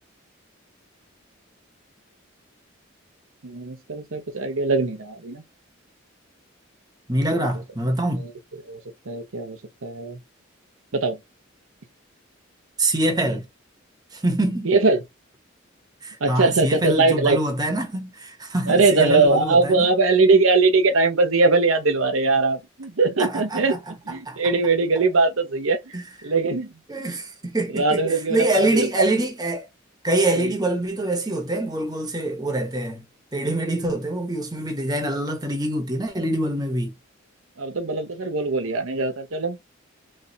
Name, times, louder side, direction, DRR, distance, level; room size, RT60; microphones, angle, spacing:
voice 1, 3.4-5.4 7.3-7.5 8.1-8.3 8.7-8.8 9.1-10.2 10.9-11.2 14.6-15.0 16.2-17.4 18.7-23.8 24.0-25.8 26.2-27.1 27.7-28.9 30.4-30.5 37.6-39.6, right 3 dB, 90° right, 0.9 m, -21 dB
voice 2, 7.1-8.3 12.8-13.5 14.1-14.7 16.0-19.9 23.2-23.8 24.2-24.4 25.9-26.0 26.9-28.0 28.3-29.7 30.0-33.0 33.3-36.9, right 1 dB, 20° right, 1.0 m, -25 dB
3.3 x 3.2 x 2.8 m
head